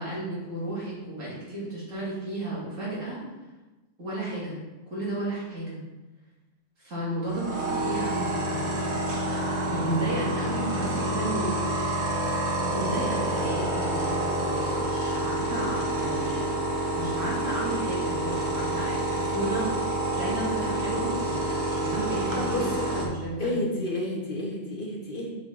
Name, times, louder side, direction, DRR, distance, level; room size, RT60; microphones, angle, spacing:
voice 1, 0.0-3.2 4.0-4.6 4.9-5.8 6.8-8.8 9.2-11.5 11.8-11.9 12.6-16.5 16.9-19.7 20.1-23.8, right 1 dB, 80° right, -7 dB, 2.8 m, -33 dB
sound 1, 7.3-23.0, right 1 dB, 60° right, 1.4 m, -28 dB
voice 2, 22.4-23.0 23.4-25.3, left 1 dB, 45° left, -1 dB, 1.2 m, -31 dB
6.3 x 4.8 x 4.5 m, 1.2 s
omnidirectional pair, 1.3 m